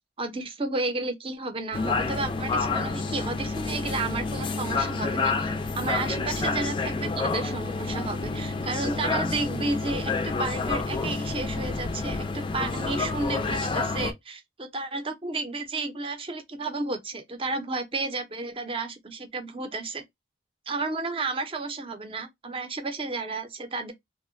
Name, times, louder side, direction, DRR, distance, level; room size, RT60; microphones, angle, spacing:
voice 1, 0.2-5.5 5.8-20.0 20.7-23.9, right 3 dB, 30° right, 0.6 m, -32 dB
sound 1, 1.7-14.1, left 3 dB, 30° left, 0.3 m, -29 dB
2.7 x 2.1 x 2.5 m
head